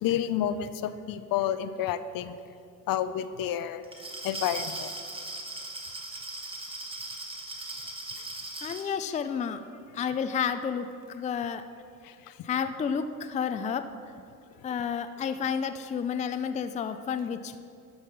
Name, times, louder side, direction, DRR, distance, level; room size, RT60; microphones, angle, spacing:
voice 1, 0.0-2.4 2.9-3.8 4.2-4.9 12.0-12.4, left 10 dB, 70° left, 12 dB, 0.6 m, -30 dB
Glass, 3.8-8.9, right 2 dB, 15° right, 1.3 m, -38 dB
voice 2, 8.6-9.6 9.9-11.6 12.4-13.9 14.6-17.6, left 7 dB, 20° left, 9 dB, 0.4 m, -31 dB
11.5 x 5.6 x 6.8 m, 2.5 s
cardioid pair, 130°, 36 cm